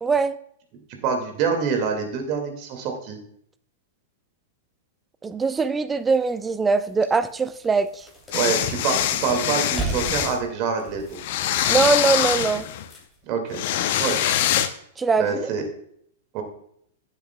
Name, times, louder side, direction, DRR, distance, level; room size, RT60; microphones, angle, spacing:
voice 1, 0.0-0.4 5.2-8.1 11.7-12.7 15.0-15.5, right 4 dB, 15° right, 14 dB, 0.5 m, -22 dB
voice 2, 1.0-3.2 8.3-11.2 13.3-13.6 14.0-14.2 15.2-15.6 16.3-16.4, right 6 dB, 40° right, 4 dB, 2.1 m, -26 dB
sound 1, 6.1-6.2 6.7-6.8 7.2-13.2, right 2 dB, 10° left, 2.9 m, -36 dB
sound 2, 8.3-10.4 11.2-12.9 13.5-14.7, left 11 dB, 55° left, 0.7 m, -24 dB
15.0 x 7.4 x 2.3 m, 0.68 s
figure-of-eight pair, 100°, 0 cm